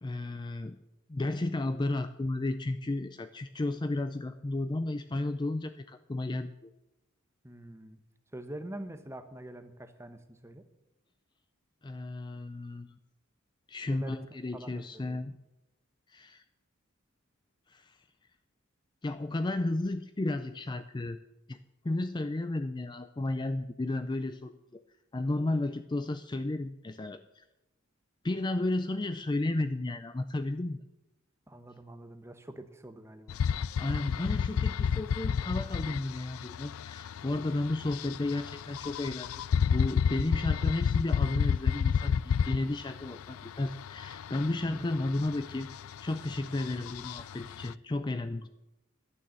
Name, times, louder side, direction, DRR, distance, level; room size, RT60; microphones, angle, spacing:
voice 1, 0.0-0.8 1.1-6.7 11.8-13.0 13.7-15.3 16.1-16.4 17.7-18.0 19.0-21.2 21.5-21.6 21.8-24.8 25.1-27.4 28.2-30.8 33.8-39.4 39.7-45.7 46.0-48.5, left 2 dB, 20° left, 10 dB, 0.4 m, -33 dB
voice 2, 7.4-8.0 8.3-10.6 13.9-14.2 14.5-15.2 31.5-33.4 44.7-44.8, right 1 dB, 15° right, 9 dB, 1.0 m, -45 dB
sound 1, 33.3-47.7, left 7 dB, 90° left, 0.4 m, -31 dB
12.0 x 9.7 x 7.5 m, 0.93 s
head